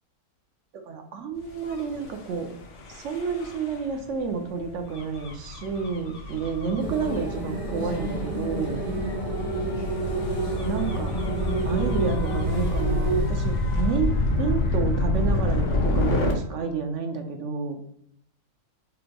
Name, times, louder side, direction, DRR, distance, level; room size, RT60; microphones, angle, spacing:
voice 1, 0.9-2.5 2.9-8.8 10.6-11.1 11.6-17.8, right 5 dB, 65° right, 5 dB, 0.8 m, -30 dB
Gull seagull / Waves surf / Siren, 1.6-16.3, left 2 dB, 60° left, 0.9 m, -28 dB
sound 1, 6.8-13.2, right 3 dB, 90° left, 1.9 m, -30 dB
5.1 x 2.9 x 2.2 m, 0.71 s
omnidirectional pair, 1.6 m